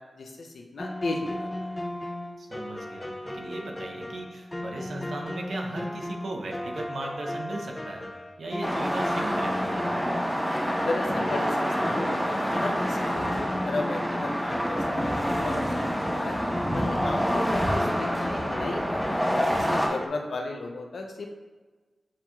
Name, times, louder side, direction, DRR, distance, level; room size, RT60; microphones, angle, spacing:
voice 1, 0.2-1.7 10.8-16.4 16.7-21.3, left 3 dB, 85° left, 2 dB, 0.6 m, -35 dB
sound 1, 0.8-20.1, left 1 dB, 20° left, 0.4 m, -36 dB
voice 2, 2.4-8.1 8.4-9.8, right 2 dB, 85° right, 1 dB, 0.7 m, -37 dB
sound 2, 8.6-19.9, equal, 10° right, 0.8 m, -27 dB
7.3 x 3.0 x 2.3 m, 1.3 s
wide cardioid pair, 75°, 0 cm